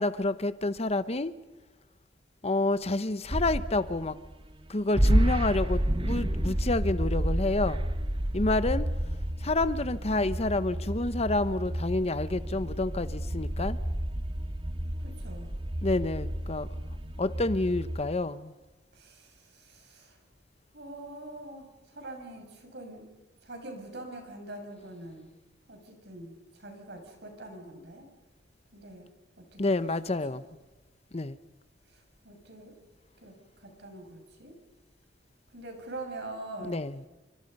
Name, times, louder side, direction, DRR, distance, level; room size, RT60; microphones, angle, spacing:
voice 1, 0.0-1.3 2.4-4.2 4.7-7.9 8.3-8.9 9.4-13.8 15.8-16.7 17.2-18.5 29.6-30.4 31.1-31.4 36.6-37.0, left 2 dB, 35° left, 14 dB, 0.9 m, -28 dB
sound 1, 3.3-4.7 4.9-18.0, right 1 dB, 30° right, 1.2 m, -30 dB
voice 2, 15.0-15.5 18.9-20.2 20.7-23.0 23.4-25.3 25.7-28.1 28.7-29.1 29.4-30.4 31.9-32.7 33.2-34.5 35.5-36.9, right 2 dB, 65° right, 4 dB, 7.1 m, -44 dB
29.0 x 25.0 x 5.4 m, 1.1 s
head